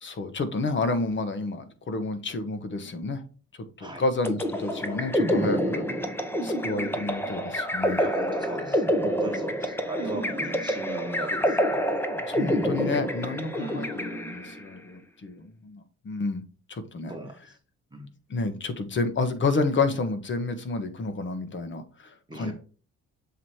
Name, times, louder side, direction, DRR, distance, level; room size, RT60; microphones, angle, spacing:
voice 1, 0.0-3.2 3.8-5.8 6.4-8.0 12.3-16.4 16.7-17.1 18.3-22.5, left 3 dB, 40° left, 9 dB, 1.2 m, -30 dB
sound 1, 4.2-14.7, equal, 5° left, 1.0 m, -27 dB
voice 2, 8.0-11.8 13.6-13.8 17.1-17.3 17.9-18.1 22.3-22.5, right 1 dB, 15° right, 1 dB, 1.4 m, -38 dB
7.2 x 3.1 x 4.3 m, 0.37 s
cardioid pair, 90°, 30 cm